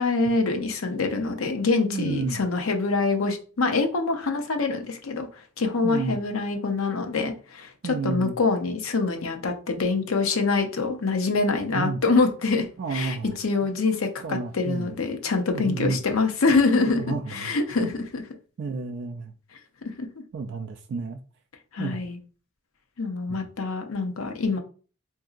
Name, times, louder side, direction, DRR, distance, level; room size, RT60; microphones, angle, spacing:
voice 1, 0.0-5.3 5.6-18.2 20.0-20.1 21.7-22.2 23.0-24.6, left 3 dB, 80° left, 0.6 m, -25 dB
voice 2, 1.9-2.4 5.8-6.2 7.8-8.4 11.7-12.0 12.8-13.4 14.2-15.0 15.5-16.0 17.0-17.9 18.6-19.3 20.3-21.2 21.8-22.0 23.3-23.5, right 4 dB, 55° right, 0.3 m, -31 dB
3.7 x 2.6 x 2.4 m
head